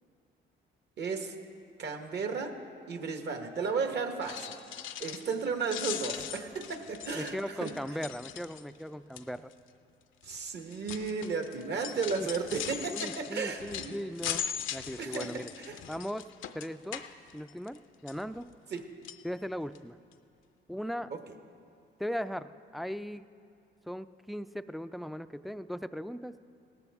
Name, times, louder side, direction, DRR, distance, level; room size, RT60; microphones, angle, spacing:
voice 1, 1.0-1.3 1.8-2.5 2.9-4.5 5.0-7.7 10.2-14.0 15.0-15.8 18.7-18.8, right 5 dB, 60° right, 5 dB, 1.3 m, -34 dB
sound 1, 4.1-5.4 5.7-8.8 9.2-9.5 10.2-17.8 18.1-18.8 19.0-19.2 19.8-19.9 20.1-20.2, left 10 dB, 80° left, 0.6 m, -40 dB
voice 2, 7.1-9.5 12.1-12.3 12.9-14.5 14.7-15.5 15.9-16.3 16.5-17.0 17.3-18.5 19.2-20.0 20.7-21.1 22.0-23.3 23.9-26.3, equal, ahead, 12 dB, 0.3 m, -38 dB
17.5 x 14.0 x 3.5 m, 2.4 s
cardioid pair, 90°, 20 cm